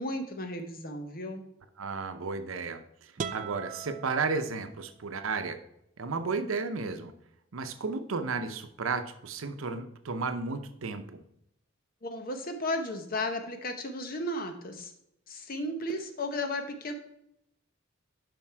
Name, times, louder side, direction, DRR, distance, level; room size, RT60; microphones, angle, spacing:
voice 1, 0.0-1.4 12.0-14.9 15.3-16.9, left 1 dB, 45° left, 6 dB, 0.8 m, -34 dB
voice 2, 1.8-2.8 3.3-5.6 6.0-7.1 7.5-11.2, right 4 dB, 90° right, 9 dB, 0.7 m, -33 dB
sound 1, 3.2-5.1, right 6 dB, 40° right, 0.3 m, -40 dB
7.4 x 5.3 x 4.6 m, 0.79 s
head